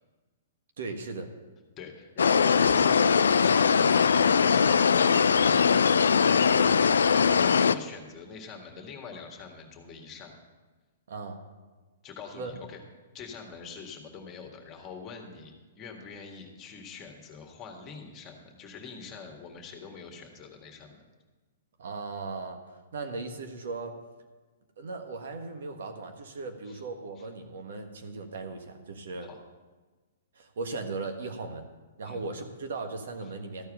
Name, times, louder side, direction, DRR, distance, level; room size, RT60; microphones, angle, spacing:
voice 1, 0.8-1.3 11.1-11.4 12.3-12.5 21.8-22.6 22.9-23.9 24.8-29.3 30.3-31.7 32.0-33.7, right 3 dB, 70° right, 5 dB, 1.4 m, -37 dB
voice 2, 1.8-10.3 12.0-12.8 13.1-21.0 26.7-26.8 27.2-27.3 29.3-29.4 32.1-32.2, left 5 dB, 25° left, 3 dB, 1.8 m, -43 dB
sound 1, 2.2-7.8, left 6 dB, 80° left, 0.4 m, -21 dB
13.5 x 4.7 x 8.8 m, 1.3 s
hypercardioid pair, 125°, 0 cm